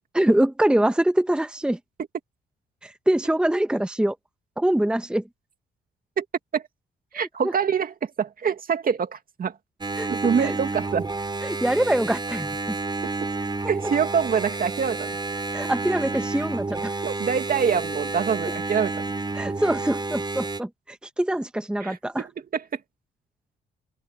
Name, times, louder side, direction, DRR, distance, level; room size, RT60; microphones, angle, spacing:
voice 1, 0.1-1.8 2.8-4.2 4.6-5.2 7.4-7.5 10.0-10.1 10.4-10.6 11.4-12.8 15.5-16.9 19.3-22.2, right 1 dB, 5° right, 1.1 m, -24 dB
voice 2, 7.1-9.5 10.1-11.1 13.7-15.2 17.0-19.0 21.8-22.6, right 7 dB, 45° right, 2.2 m, -25 dB
Engine, 9.8-20.6, right 3 dB, 20° right, 5.0 m, -30 dB
cardioid pair, 90°, 20 cm